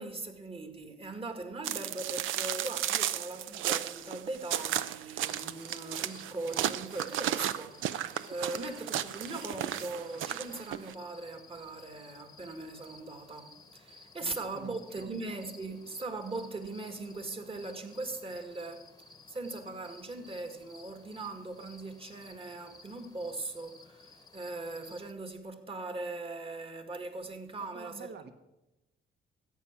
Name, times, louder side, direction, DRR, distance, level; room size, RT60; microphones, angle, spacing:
voice 1, 0.0-18.9 19.3-28.1, right 2 dB, 30° right, 1.9 m, -40 dB
sound 1, 1.6-10.9, right 12 dB, 85° right, 0.6 m, -34 dB
sound 2, 5.2-25.1, left 3 dB, 20° left, 1.0 m, -56 dB
voice 2, 14.2-15.1 27.7-28.3, right 5 dB, 55° right, 1.3 m, -48 dB
14.0 x 8.6 x 6.0 m
cardioid pair, 90°, 20 cm